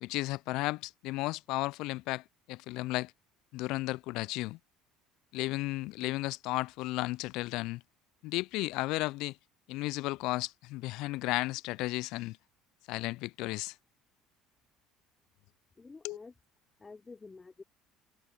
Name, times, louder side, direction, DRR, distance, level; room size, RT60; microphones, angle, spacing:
voice 1, 0.0-3.1 3.5-4.6 5.3-7.8 8.2-9.4 9.7-12.4 12.9-13.8 16.0-16.2, left 20 dB, 65° left, 0.4 m, -34 dB
voice 2, 15.8-16.3 16.8-17.6, left 4 dB, 20° left, 3.3 m, -49 dB
hypercardioid pair, 65°, 0 cm